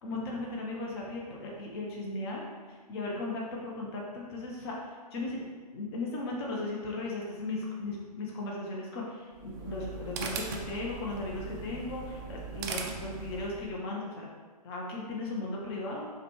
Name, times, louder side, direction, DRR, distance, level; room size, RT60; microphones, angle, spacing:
voice 1, 0.0-2.4 2.9-4.7 5.1-5.5 5.7-14.3 14.6-16.1, left 2 dB, 40° left, -2 dB, 0.7 m, -36 dB
sound 1, 9.3-13.8, right 5 dB, 30° right, 0.3 m, -39 dB
4.7 x 2.3 x 3.0 m, 1.4 s
hypercardioid pair, 135°, 20 cm